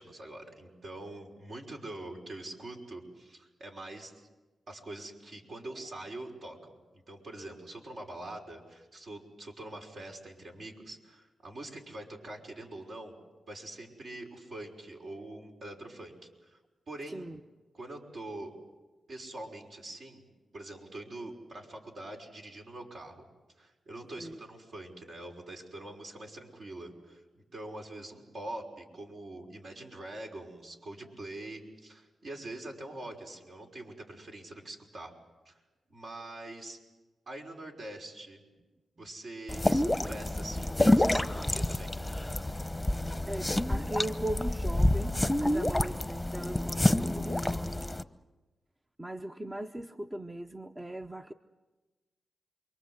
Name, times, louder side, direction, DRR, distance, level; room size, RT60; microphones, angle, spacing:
voice 1, 0.0-4.3 4.7-13.2 13.5-16.2 16.4-16.6 16.9-17.3 17.7-18.5 19.1-20.2 20.5-23.3 23.6-35.1 35.4-35.6 35.9-36.8 37.3-38.4 39.0-41.9, right 1 dB, 60° right, 1 dB, 5.8 m, -44 dB
sound 1, 39.5-48.0, left 1 dB, 10° left, 1.0 m, -28 dB
voice 2, 43.3-45.2 45.4-47.7 49.0-51.3, right 1 dB, 20° right, 7 dB, 0.8 m, -39 dB
28.5 x 23.5 x 8.0 m, 1.2 s
cardioid pair, 80°, 0 cm